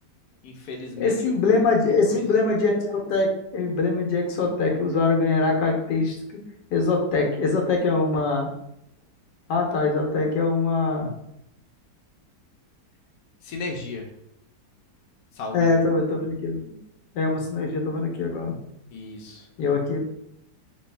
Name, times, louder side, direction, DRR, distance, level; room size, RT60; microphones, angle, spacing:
voice 1, 0.4-1.1 1.5-1.6 2.1-2.2 13.4-14.1 15.3-15.7 18.9-19.5, left 3 dB, 70° left, 0 dB, 1.2 m, -35 dB
voice 2, 1.0-6.4 6.7-8.5 9.5-11.1 15.5-16.6 17.1-18.6 19.6-20.1, left 3 dB, 90° left, 1 dB, 1.4 m, -23 dB
3.3 x 3.1 x 3.3 m, 0.79 s
omnidirectional pair, 1.8 m